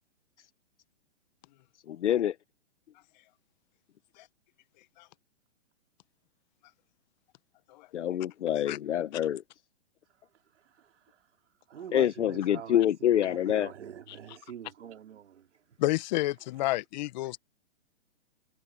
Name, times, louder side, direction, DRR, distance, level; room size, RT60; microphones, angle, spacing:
voice 1, 1.9-2.3 7.9-9.4 11.9-13.7, left 11 dB, 75° left, 1.0 m, -26 dB
voice 2, 10.5-11.3 11.7-15.6, right 9 dB, 75° right, 4.0 m, -45 dB
voice 3, 15.8-17.4, left 17 dB, 40° left, 1.2 m, -30 dB
hypercardioid pair, 145°, 36 cm